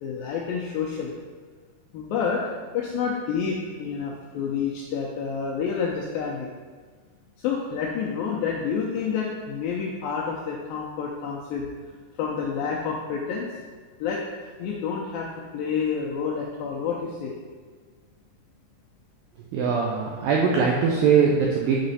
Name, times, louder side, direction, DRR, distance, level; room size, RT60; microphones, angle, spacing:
voice 1, 0.0-1.1 1.9-6.5 7.4-11.7 12.2-13.5 14.0-17.4, left 6 dB, 85° left, -3 dB, 2.0 m, -29 dB
voice 2, 19.5-21.8, right 6 dB, 85° right, -2 dB, 2.0 m, -21 dB
7.7 x 4.1 x 4.1 m, 1.5 s
omnidirectional pair, 4.8 m